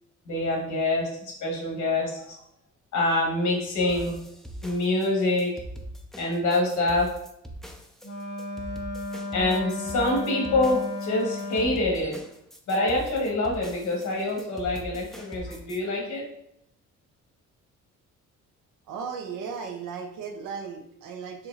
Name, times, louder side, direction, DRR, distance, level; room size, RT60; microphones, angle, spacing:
voice 1, 0.2-2.4 2.9-4.2 4.6-5.5 6.2-7.1 9.3-12.2 12.7-16.2, left 2 dB, 70° left, -1 dB, 1.3 m, -26 dB
sound 1, 3.9-15.8, equal, ahead, 0.4 m, -42 dB
Wind instrument woodwind instrument, 8.0-11.9, left 2 dB, 35° left, 0.7 m, -34 dB
voice 2, 18.9-21.5, right 6 dB, 85° right, 4 dB, 0.6 m, -36 dB
4.5 x 2.8 x 2.4 m, 0.75 s
cardioid pair, 90°, 30 cm